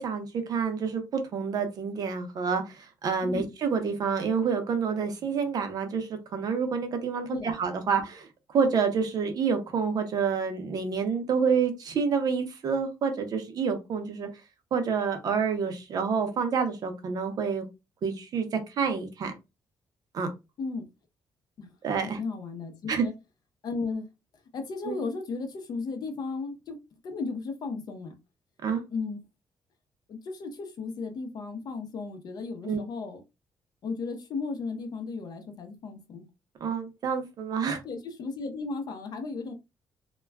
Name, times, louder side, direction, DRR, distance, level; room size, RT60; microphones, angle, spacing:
voice 1, 0.0-8.3 8.5-14.3 14.7-17.6 18.0-19.3 20.1-20.3 21.8-22.2 22.9-23.0 24.9-25.0 28.6-28.8 32.6-32.8 36.6-37.8, right 6 dB, 50° right, 0.6 m, -28 dB
voice 2, 22.0-23.1 23.6-24.1 24.5-26.8 27.0-28.2 28.9-29.2 30.1-33.2 33.8-36.3 37.8-39.5, left 4 dB, 55° left, 0.6 m, -35 dB
2.2 x 2.1 x 3.4 m
cardioid pair, 165°, 8 cm